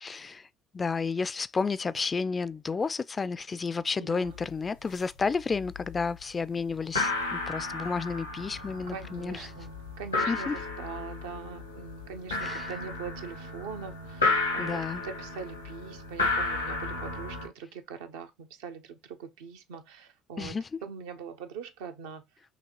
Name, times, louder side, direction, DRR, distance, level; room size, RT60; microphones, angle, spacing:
voice 1, 0.0-0.5 0.7-9.5 10.3-10.6 12.4-12.7 14.6-15.0 20.4-20.8, left 4 dB, 30° left, 0.3 m, -31 dB
voice 2, 4.0-4.4 8.9-22.2, right 6 dB, 70° right, 0.6 m, -42 dB
sound 1, 4.3-4.4 4.7-5.2 5.5-6.1 6.4-6.5 6.8-17.5, left 3 dB, 85° left, 1.0 m, -33 dB
5.9 x 2.8 x 2.9 m
figure-of-eight pair, 55°, 0 cm